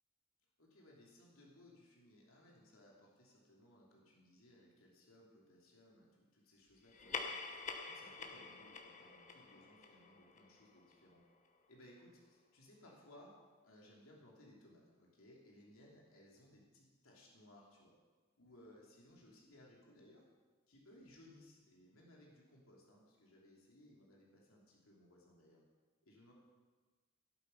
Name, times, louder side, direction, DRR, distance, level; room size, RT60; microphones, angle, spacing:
voice 1, 0.6-11.2 11.7-13.4 13.6-17.9 18.4-20.2 20.7-25.6 26.0-26.3, left 1 dB, 80° left, -3 dB, 3.1 m, -63 dB
sound 1, 6.9-11.7, left 4 dB, 35° left, 1.2 m, -48 dB
18.0 x 8.6 x 5.6 m, 1.3 s
head